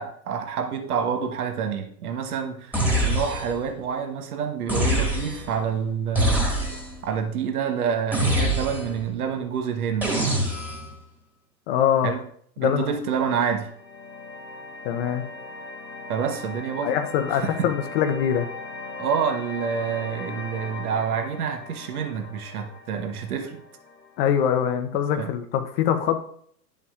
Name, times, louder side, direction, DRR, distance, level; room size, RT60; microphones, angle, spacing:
voice 1, 0.0-6.5 7.1-10.4 12.0-12.2 12.6-13.7 16.1-17.0 17.3-17.7 19.0-23.6 25.2-25.3, right 7 dB, 60° right, 5 dB, 1.3 m, -28 dB
sound 1, 2.7-3.7 4.7-5.6 6.1-7.0 8.1-9.0 10.0-10.9, equal, 5° right, 1.9 m, -24 dB
voice 2, 11.7-12.1 12.6-13.0 14.8-15.3 16.8-18.5 24.2-26.3, left 9 dB, 35° left, 6 dB, 0.9 m, -23 dB
sound 2, 13.2-24.3, left 3 dB, 90° left, 1.5 m, -39 dB
10.5 x 7.2 x 2.4 m, 0.64 s
hypercardioid pair, 120°, 50 cm